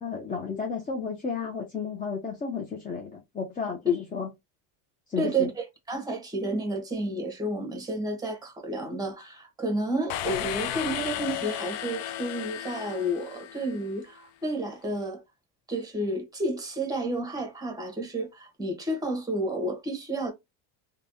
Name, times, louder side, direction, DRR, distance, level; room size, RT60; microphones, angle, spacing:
voice 1, 0.0-4.3 5.1-5.5, left 5 dB, 20° left, 0.7 m, -33 dB
voice 2, 5.2-15.2 15.7-20.3, right 1 dB, 10° right, 1.1 m, -31 dB
sound 1, 10.1-13.9, left 11 dB, 65° left, 0.6 m, -34 dB
3.2 x 2.4 x 2.6 m
supercardioid pair, 115°, 43 cm